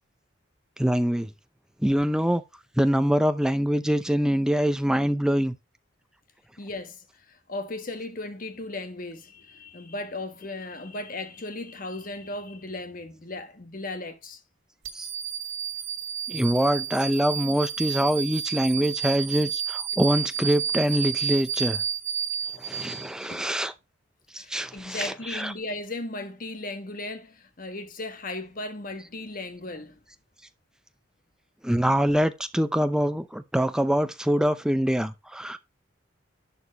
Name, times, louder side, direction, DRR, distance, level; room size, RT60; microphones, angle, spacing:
voice 1, 0.8-1.3 1.8-2.4 2.8-5.5 14.9-15.1 16.3-21.8 22.6-23.7 24.3-25.5 31.6-35.6, equal, 5° right, 0.6 m, -24 dB
voice 2, 6.6-14.4 23.3-23.5 24.4-30.0, left 2 dB, 45° left, 1.3 m, -36 dB
sound 1, 14.8-23.3, right 7 dB, 90° right, 2.0 m, -31 dB
11.0 x 4.5 x 4.0 m
head